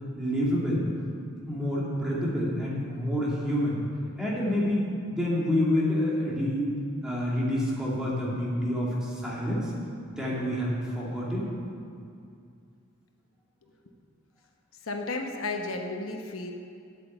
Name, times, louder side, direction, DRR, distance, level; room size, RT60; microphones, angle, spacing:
voice 1, 0.2-0.9 1.5-3.8 4.2-6.7 7.0-9.7 10.2-11.5, left 1 dB, 5° right, -7 dB, 2.6 m, -28 dB
voice 2, 14.8-16.5, left 2 dB, 80° left, 3 dB, 1.0 m, -33 dB
8.4 x 8.1 x 8.8 m, 2.4 s
head